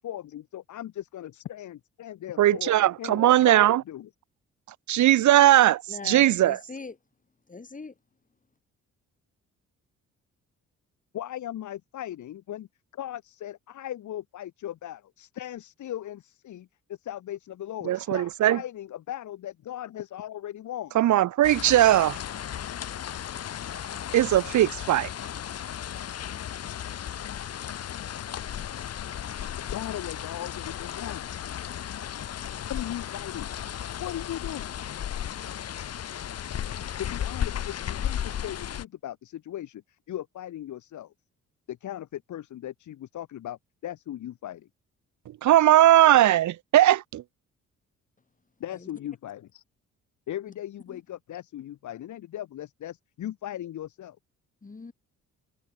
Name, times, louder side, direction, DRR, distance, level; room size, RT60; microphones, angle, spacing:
voice 1, 0.0-4.1 11.1-12.7 12.9-21.0 29.6-31.2 32.7-33.5 34.0-34.8 37.0-39.8 40.1-41.1 41.7-44.7 48.6-49.6 50.3-54.2, left 12 dB, 75° left, 5.4 m, -38 dB
voice 2, 2.4-3.8 4.9-6.6 17.8-18.6 20.9-22.2 24.1-25.1 45.4-47.2, right 13 dB, 70° right, 1.2 m, -19 dB
voice 3, 5.9-7.0 7.5-8.0 48.7-48.9 50.9-51.0 54.6-54.9, left 4 dB, 25° left, 7.5 m, -41 dB
sound 1, 21.4-38.8, left 10 dB, 55° left, 1.5 m, -35 dB
cardioid pair, 90°, 30 cm